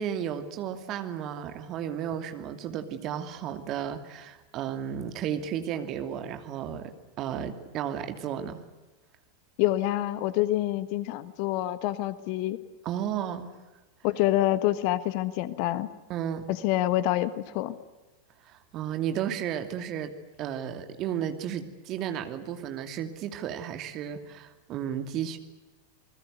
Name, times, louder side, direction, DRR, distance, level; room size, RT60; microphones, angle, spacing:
voice 1, 0.0-8.6 12.8-13.5 16.1-16.5 18.4-20.1 20.4-25.4, right 9 dB, 35° right, 8 dB, 2.7 m, -33 dB
voice 2, 9.6-12.6 14.0-15.9 16.5-17.7, left 15 dB, 45° left, 16 dB, 1.4 m, -27 dB
28.5 x 21.0 x 8.2 m, 1.1 s
figure-of-eight pair, 90°, 0 cm